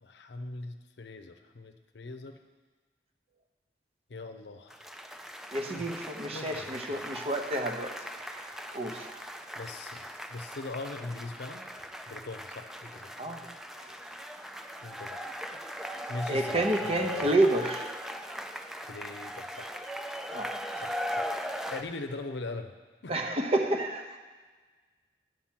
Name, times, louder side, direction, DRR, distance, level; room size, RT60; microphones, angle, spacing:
voice 1, 0.0-2.4 4.1-5.0 5.7-5.9 6.3-7.0 9.5-11.7 12.1-13.2 14.8-15.3 16.1-17.4 18.8-19.7 20.8-21.4 21.7-22.7 23.0-23.1, left 3 dB, 80° left, 7 dB, 0.6 m, -41 dB
sound 1, 4.7-21.8, equal, 5° right, 0.4 m, -39 dB
voice 2, 5.5-9.3 13.2-13.5 13.8-13.9 16.3-18.0 20.3-20.5 23.1-24.2, right 1 dB, 35° right, 4 dB, 0.8 m, -30 dB
9.1 x 5.8 x 7.5 m, 1.4 s
head